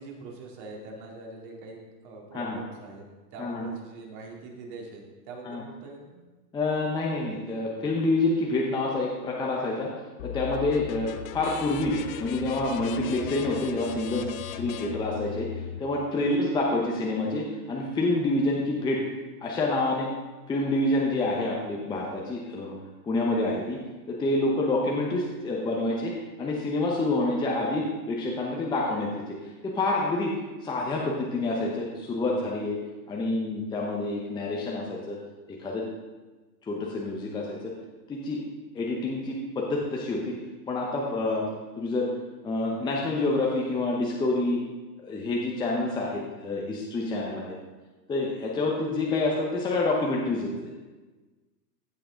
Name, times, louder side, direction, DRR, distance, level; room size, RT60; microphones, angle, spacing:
voice 1, 0.0-3.1 3.3-6.2 16.2-16.3, right 3 dB, 40° right, 0 dB, 2.4 m, -43 dB
voice 2, 6.5-9.9 10.2-19.0 19.4-20.1 20.5-22.8 23.0-23.8 24.1-26.1 26.4-30.3 30.6-32.8 33.1-35.2 35.5-35.8 36.7-37.6 38.1-38.4 38.7-40.4 40.7-41.4 41.8-42.1 42.4-44.6 45.1-47.6 48.1-50.7, left 2 dB, 10° left, -2 dB, 0.8 m, -27 dB
sound 1, 10.2-15.8, left 10 dB, 55° left, 0.8 m, -38 dB
15.0 x 5.8 x 3.8 m, 1.3 s
hypercardioid pair, 130°, 49 cm